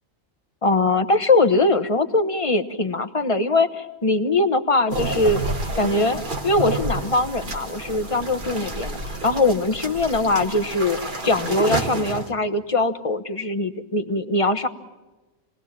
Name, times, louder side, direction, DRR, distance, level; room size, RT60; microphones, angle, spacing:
voice 1, 0.6-5.4 5.7-11.0 11.2-14.7, left 2 dB, 30° left, 9 dB, 1.2 m, -21 dB
sound 1, 4.9-12.3, right 2 dB, 45° right, 1.8 m, -29 dB
28.5 x 19.5 x 7.4 m, 1.1 s
omnidirectional pair, 1.2 m